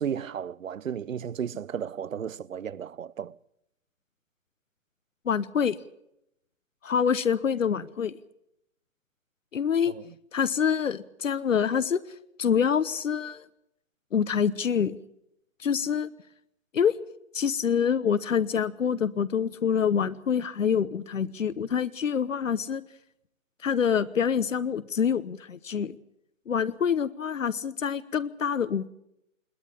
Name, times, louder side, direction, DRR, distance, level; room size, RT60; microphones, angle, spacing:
voice 1, 0.0-3.4 9.9-10.1, right 8 dB, 75° right, 0.9 m, -34 dB
voice 2, 5.2-5.8 6.8-8.1 9.5-9.9 10.3-12.0 12.4-13.4 14.1-15.0 15.6-16.1 16.7-16.9 17.3-22.8 23.6-26.0 26.5-28.9, left 7 dB, 70° left, 1.1 m, -26 dB
21.5 x 17.5 x 7.2 m
hypercardioid pair, 160°, 40 cm